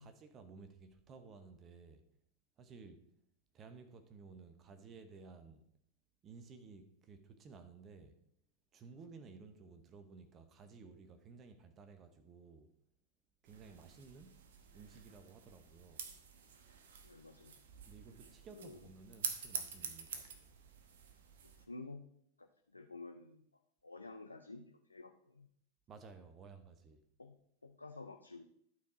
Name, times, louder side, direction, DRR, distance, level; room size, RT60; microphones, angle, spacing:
voice 1, 0.0-2.0 2.6-3.0 3.5-5.6 6.2-8.2 8.7-12.7 13.4-14.4 14.7-16.0 17.9-20.5 25.9-27.0, right 4 dB, 30° right, 8 dB, 0.9 m, -56 dB
sound 1, 13.4-21.6, right 6 dB, 65° right, 1.0 m, -47 dB
voice 2, 17.0-17.5 18.5-18.8 21.4-22.1 22.4-23.4 23.8-25.5 27.2-27.4 27.6-28.4, left 3 dB, 90° left, 6 dB, 0.5 m, -51 dB
11.5 x 4.6 x 5.0 m, 0.73 s
figure-of-eight pair, 90°, 0 cm